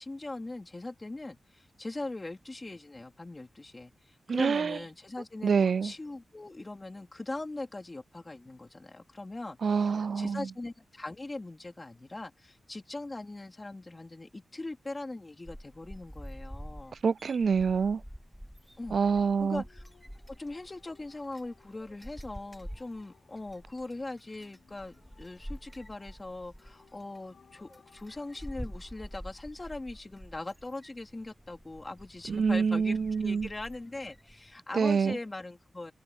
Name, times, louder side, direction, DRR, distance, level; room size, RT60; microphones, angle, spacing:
voice 1, 0.0-17.0 18.8-19.0 19.4-19.8 20.3-35.9, left 2 dB, 20° left, 3.7 m, -41 dB
voice 2, 4.3-4.8 5.4-5.9 9.6-10.5 17.0-18.0 18.9-19.6 32.3-33.5 34.7-35.2, right 5 dB, 60° right, 0.5 m, -26 dB
sound 1, 15.5-34.6, equal, ahead, 0.7 m, -48 dB
sound 2, 17.0-29.4, left 6 dB, 75° left, 7.0 m, -64 dB
wide cardioid pair, 175°, 0 cm